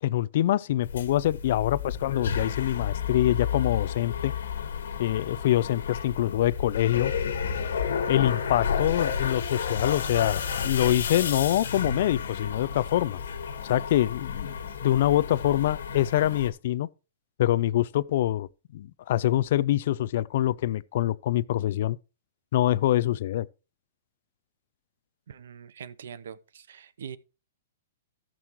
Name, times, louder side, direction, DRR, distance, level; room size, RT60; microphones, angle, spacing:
voice 1, 0.0-4.3 5.0-7.1 8.1-13.2 13.6-16.9 17.4-18.5 18.7-22.0 22.5-23.5, left 13 dB, 60° left, 0.4 m, -25 dB
sound 1, 0.8-16.5, left 7 dB, 80° left, 1.6 m, -31 dB
voice 2, 25.3-27.2, right 8 dB, 75° right, 0.7 m, -43 dB
14.5 x 6.2 x 3.0 m
hypercardioid pair, 140°, 0 cm